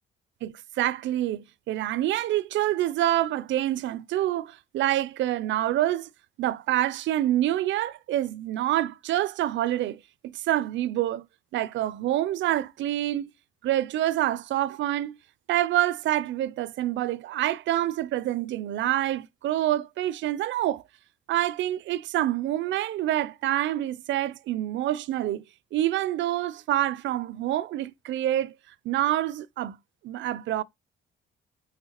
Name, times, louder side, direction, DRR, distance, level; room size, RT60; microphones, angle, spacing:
voice 1, 0.4-6.1 6.4-11.2 11.5-13.3 13.6-15.2 15.5-20.8 21.3-25.4 25.7-28.5 28.8-29.8 30.0-30.6, right 13 dB, 70° right, 0.4 m, -27 dB
5.7 x 3.2 x 2.8 m
cardioid pair, 90°, 20 cm